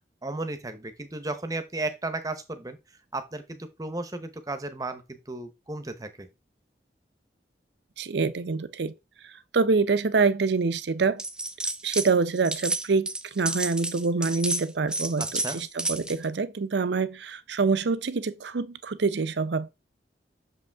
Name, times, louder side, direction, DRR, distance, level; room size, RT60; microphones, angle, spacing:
voice 1, 0.2-2.8 3.1-6.3 15.2-15.6, right 2 dB, 20° right, 0.8 m, -34 dB
voice 2, 8.0-8.9 9.2-11.2 11.8-19.7, right 4 dB, 75° right, 0.6 m, -26 dB
sound 1, 11.2-12.1 12.4-16.2, right 2 dB, 5° right, 0.4 m, -31 dB
6.4 x 5.1 x 3.4 m
head